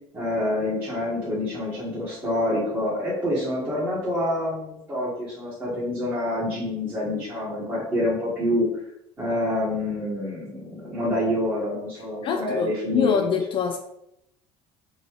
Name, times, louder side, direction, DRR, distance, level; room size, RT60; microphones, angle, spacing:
voice 1, 0.1-8.7 9.2-13.3, left 1 dB, 15° right, -11 dB, 1.6 m, -27 dB
voice 2, 12.2-13.8, left 6 dB, 45° left, 5 dB, 0.5 m, -24 dB
5.4 x 2.7 x 3.1 m, 0.80 s
cardioid pair, 115°, 12 cm